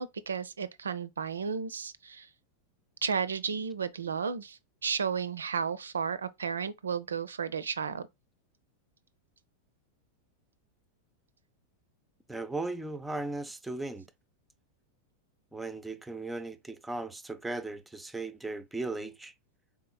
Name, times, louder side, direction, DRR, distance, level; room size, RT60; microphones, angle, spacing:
voice 1, 0.0-2.3 3.0-8.0, right 6 dB, 70° right, 0.5 m, -33 dB
voice 2, 12.3-14.1 15.5-19.3, right 2 dB, 5° right, 0.5 m, -37 dB
4.3 x 3.6 x 2.3 m
figure-of-eight pair, 90°, 0 cm